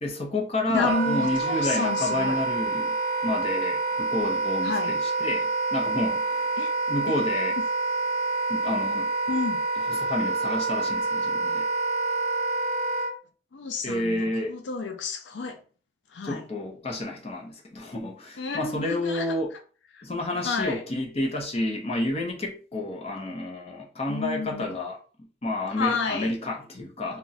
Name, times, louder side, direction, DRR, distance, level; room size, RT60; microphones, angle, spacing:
voice 1, 0.0-3.0 3.2-6.5 6.9-7.6 8.5-9.1 9.9-11.7 13.8-14.6 16.2-19.5 20.0-25.0 25.4-27.2, left 1 dB, 35° left, 0.7 m, -30 dB
voice 2, 0.7-2.4 4.6-4.9 6.6-6.7 7.1-7.2 9.3-9.6 13.5-15.6 16.1-16.4 18.4-19.4 19.9-20.0 20.4-20.8 24.1-24.7 25.8-26.3, left 4 dB, 80° left, 0.5 m, -30 dB
Wind instrument woodwind instrument, 0.8-13.1, right 3 dB, 35° right, 0.4 m, -27 dB
2.4 x 2.2 x 4.0 m
head